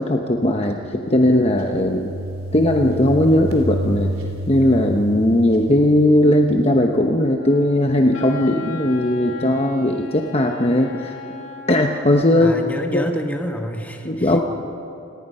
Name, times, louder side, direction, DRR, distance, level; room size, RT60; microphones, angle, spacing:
voice 1, 0.0-2.1 2.5-4.1 4.5-11.2 11.7-12.5 12.9-13.1 14.0-14.4, left 1 dB, 30° left, 3 dB, 1.0 m, -18 dB
sound 1, 0.8-6.5, equal, 85° right, 3.8 m, -30 dB
Wind instrument woodwind instrument, 7.4-12.2, left 5 dB, 70° left, 1.9 m, -37 dB
voice 2, 12.3-14.3, equal, 10° left, 3 dB, 1.5 m, -28 dB
28.0 x 19.0 x 5.6 m, 2.6 s
head